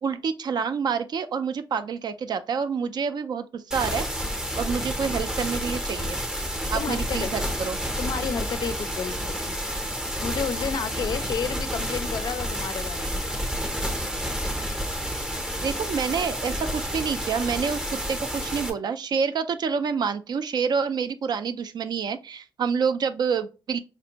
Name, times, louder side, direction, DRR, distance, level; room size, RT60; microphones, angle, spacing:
voice 1, 0.0-4.1 4.5-6.2 6.7-7.8 15.6-23.8, right 6 dB, 55° right, 0.3 m, -28 dB
sound 1, 3.7-18.7, equal, 5° right, 0.6 m, -30 dB
voice 2, 6.7-7.3 8.0-9.6 10.2-13.2, left 6 dB, 50° left, 0.4 m, -31 dB
4.1 x 2.6 x 2.8 m
wide cardioid pair, 130°, 9 cm